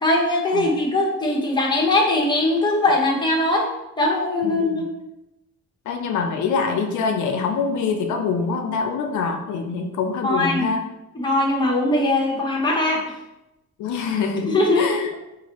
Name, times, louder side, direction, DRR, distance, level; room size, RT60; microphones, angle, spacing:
voice 1, 0.0-3.7 4.0-4.8 10.2-10.7 11.1-13.0 14.5-14.9, left 2 dB, 15° left, -2 dB, 0.9 m, -20 dB
voice 2, 4.4-4.8 5.9-10.8 13.8-15.1, left 5 dB, 75° left, 4 dB, 0.5 m, -25 dB
3.9 x 2.5 x 2.9 m, 0.93 s
cardioid pair, 90°, 30 cm